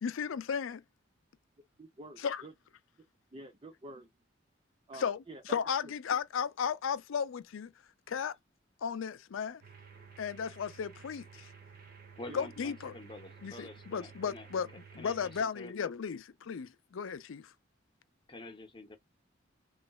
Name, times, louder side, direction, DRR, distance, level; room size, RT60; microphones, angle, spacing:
voice 1, 0.0-0.8 2.2-2.4 4.9-7.7 8.1-8.4 8.8-9.6 10.2-11.5 12.3-12.9 13.4-14.7 14.9-17.5, left 7 dB, 85° left, 0.4 m, -35 dB
voice 2, 1.8-2.5 3.3-4.1 4.9-5.6 12.3-12.5, right 2 dB, 30° right, 0.5 m, -48 dB
sound 1, 9.6-15.4, right 6 dB, 50° right, 1.0 m, -53 dB
voice 3, 12.2-14.5 15.0-15.9 18.3-19.0, left 2 dB, 25° left, 0.8 m, -48 dB
3.1 x 3.0 x 2.3 m
head